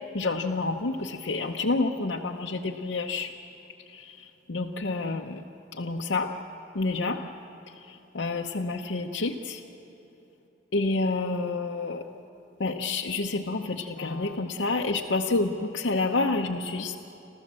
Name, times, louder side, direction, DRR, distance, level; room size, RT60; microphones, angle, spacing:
voice 1, 0.1-3.3 3.9-5.4 5.7-6.4 6.7-7.2 7.8-9.6 10.7-12.0 12.6-17.0, left 3 dB, 90° left, 0 dB, 0.8 m, -29 dB
28.0 x 14.5 x 7.5 m, 2.9 s
head